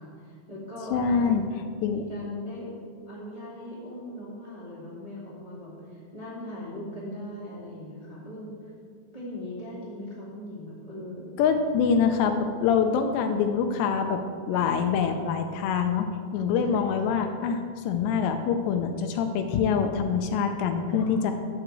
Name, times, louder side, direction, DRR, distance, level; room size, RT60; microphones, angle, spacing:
voice 1, 0.0-1.3 1.8-2.7 3.1-8.5 9.1-11.3 12.9-13.0 14.5-15.3 16.6-17.2 20.9-21.2, left 1 dB, 15° right, -8 dB, 1.5 m, -40 dB
voice 2, 0.9-1.4 1.8-2.0 11.4-14.2 14.5-16.1 16.3-17.6 17.9-21.3, left 6 dB, 80° left, 6 dB, 2.8 m, -25 dB
11.5 x 5.0 x 7.6 m, 2.1 s
omnidirectional pair, 5.1 m